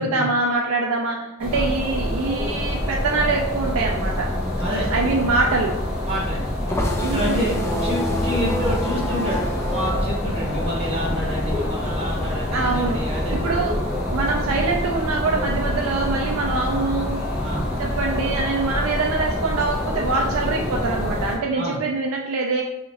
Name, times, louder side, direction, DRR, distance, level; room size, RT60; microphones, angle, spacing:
voice 1, 0.0-4.3 4.9-5.8 7.0-7.7 12.5-13.0 13.3-13.7 14.1-17.2 17.8-22.6, right 3 dB, 70° right, 0 dB, 0.4 m, -24 dB
sound 1, 1.4-21.4, left 1 dB, 5° right, 0.8 m, -26 dB
sound 2, 4.5-11.4 11.7-13.5, equal, 15° left, 0.4 m, -29 dB
voice 2, 4.6-5.1 6.0-6.5 7.1-13.5 14.1-14.3 17.4-17.7 21.6-21.8, equal, 30° right, -5 dB, 1.3 m, -28 dB
3.0 x 2.4 x 4.0 m, 0.89 s
head